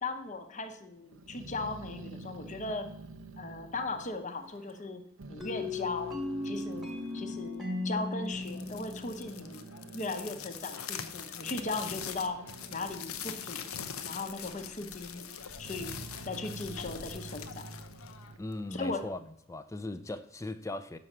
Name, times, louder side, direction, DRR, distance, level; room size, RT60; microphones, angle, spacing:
voice 1, 0.0-2.9 3.4-5.0 5.3-6.2 6.4-9.7 9.9-12.4 12.7-13.6 14.0-15.3 15.6-16.0 16.3-17.7 18.7-19.0, left 3 dB, 35° left, 0.8 m, -37 dB
Growling, 1.1-4.9 5.2-7.5 8.1-13.9 14.3-15.0 15.4-19.2, right 2 dB, 70° right, 0.6 m, -48 dB
sound 1, 5.4-10.1, left 2 dB, ahead, 1.2 m, -37 dB
sound 2, 8.3-18.7, left 8 dB, 90° left, 0.6 m, -43 dB
voice 2, 18.4-19.2 19.5-21.0, left 2 dB, 15° left, 0.4 m, -38 dB
6.3 x 5.5 x 7.1 m
head